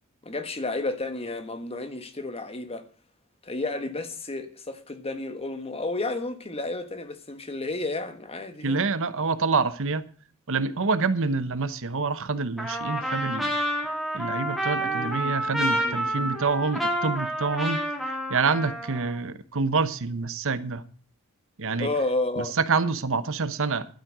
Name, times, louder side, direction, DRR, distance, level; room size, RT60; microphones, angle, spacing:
voice 1, 0.2-2.8 3.4-8.8 14.8-16.3 21.8-22.6, left 2 dB, 25° left, 1.4 m, -32 dB
voice 2, 8.6-10.0 10.5-13.5 14.1-17.8 18.3-20.8 21.6-21.9 22.4-23.9, right 4 dB, 60° right, 1.0 m, -27 dB
Trumpet, 12.6-19.2, right 1 dB, ahead, 2.9 m, -29 dB
12.0 x 8.5 x 6.1 m
head